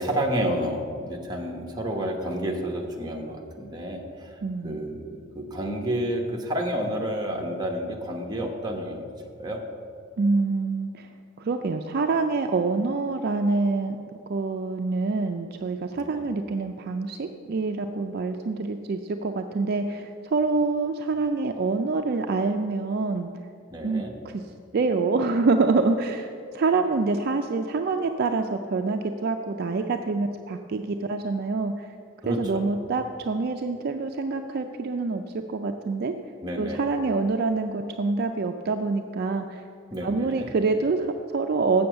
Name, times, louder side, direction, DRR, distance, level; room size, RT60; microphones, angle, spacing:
voice 1, 0.0-4.4 4.6-9.1 9.4-9.6 15.9-16.2 23.7-24.1 32.2-32.7 36.4-36.9 39.9-40.5, equal, 20° right, 1 dB, 1.1 m, -30 dB
voice 2, 4.4-4.8 10.2-11.1 11.4-14.0 14.3-23.3 23.8-24.4 24.7-31.9 32.3-36.1 36.6-39.6 40.0-41.9, right 3 dB, 50° right, 6 dB, 0.4 m, -26 dB
7.0 x 6.9 x 7.8 m, 2.4 s
head